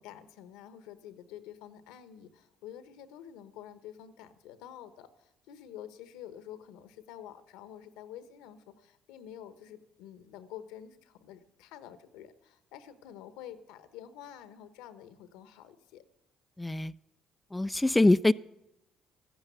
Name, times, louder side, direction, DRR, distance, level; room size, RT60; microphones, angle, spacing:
voice 1, 0.0-16.0, left 10 dB, 80° left, 1.1 m, -48 dB
voice 2, 16.6-16.9 17.5-18.3, left 2 dB, 10° left, 0.4 m, -24 dB
14.0 x 9.7 x 6.9 m
supercardioid pair, 65°, 0 cm